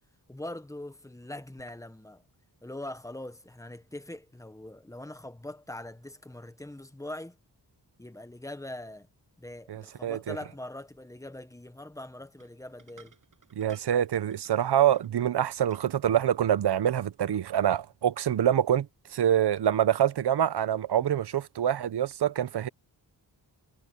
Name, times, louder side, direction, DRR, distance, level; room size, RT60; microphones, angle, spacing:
voice 1, 0.3-2.2 2.6-7.4 8.0-9.1 9.4-13.2, left 1 dB, 10° left, 1.3 m, -42 dB
voice 2, 9.7-10.4 13.6-18.9 19.1-22.7, right 10 dB, 75° right, 0.8 m, -25 dB
sound 1, 12.4-17.9, right 5 dB, 50° right, 7.7 m, -61 dB
wide cardioid pair, 120°, 41 cm